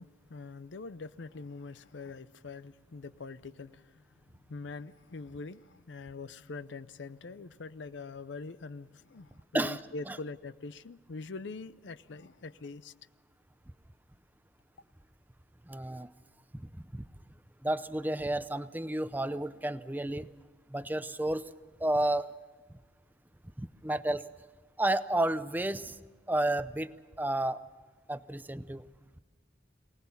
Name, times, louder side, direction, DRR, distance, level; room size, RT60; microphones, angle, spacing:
voice 1, 0.0-3.9 4.5-12.9, left 3 dB, 85° left, 0.6 m, -43 dB
voice 2, 15.7-16.1 16.9-17.0 17.6-20.3 20.7-21.4 21.8-22.3 23.6-24.2 24.8-25.9 26.3-26.9 27.2-27.6 28.1-28.8, right 1 dB, 10° right, 0.6 m, -31 dB
24.0 x 18.5 x 7.0 m
head